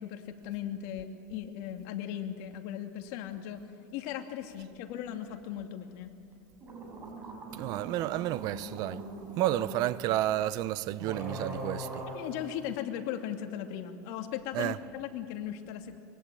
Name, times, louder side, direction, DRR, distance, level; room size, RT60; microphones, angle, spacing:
voice 1, 0.0-3.6 3.9-6.1 12.1-16.0, left 10 dB, 60° left, 2.6 m, -38 dB
sound 1, 6.3-6.4 6.6-9.8 10.6-10.7 11.0-12.2, right 1 dB, 25° right, 6.6 m, -41 dB
voice 2, 7.5-9.0 9.4-12.0 14.5-14.8, right 14 dB, 45° right, 0.7 m, -31 dB
25.5 x 23.0 x 9.1 m
supercardioid pair, 135°, 9 cm